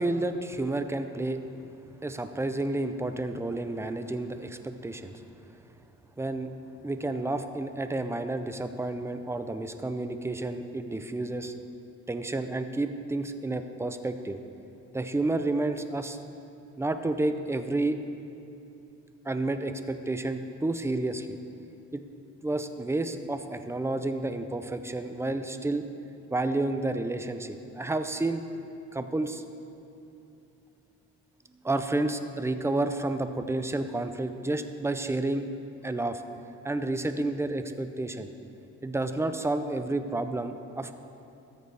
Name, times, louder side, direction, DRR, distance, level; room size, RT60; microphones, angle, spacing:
voice 1, 0.0-1.4 2.0-5.2 6.2-6.5 6.8-11.5 12.1-14.4 14.9-16.2 16.8-18.0 19.2-21.4 21.9-22.0 22.4-25.9 26.3-28.4 28.9-29.4 31.5-35.4 35.8-36.2 36.6-38.3 38.8-40.9, right 2 dB, 10° right, 9 dB, 0.5 m, -30 dB
14.0 x 7.9 x 3.4 m, 2.8 s
cardioid pair, 90°, 30 cm